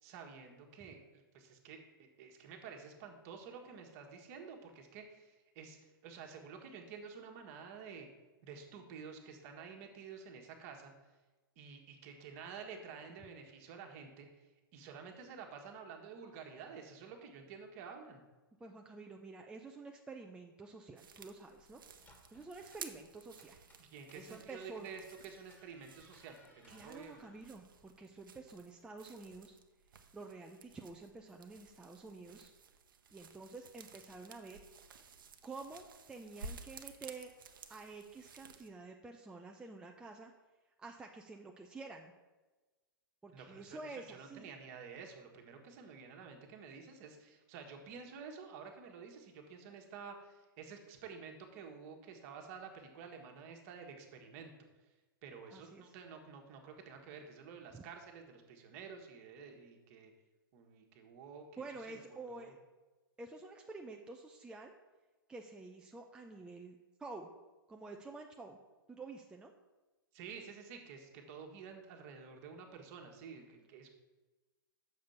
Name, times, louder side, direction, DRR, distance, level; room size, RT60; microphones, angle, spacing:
voice 1, 0.0-8.1 8.4-10.9 11.6-14.5 14.7-18.2 23.8-27.2 43.3-54.5 55.2-60.1 60.5-62.5 70.1-73.9, right 6 dB, 40° right, 4 dB, 1.4 m, -50 dB
voice 2, 18.6-21.8 22.3-23.6 24.1-24.9 26.7-29.6 30.1-32.5 33.1-34.6 35.4-37.3 37.7-40.3 40.8-42.1 43.2-44.5 55.5-55.9 57.7-57.8 61.6-62.6 63.2-64.7 65.3-67.3 67.7-68.6 68.9-69.5, right 3 dB, 5° right, 2 dB, 0.5 m, -49 dB
sound 1, 21.0-38.7, right 5 dB, 65° right, 0.8 m, -55 dB
sound 2, 21.5-28.0, left 1 dB, 15° left, 1.6 m, -66 dB
6.7 x 5.1 x 6.9 m, 1.2 s
figure-of-eight pair, 110°, 12 cm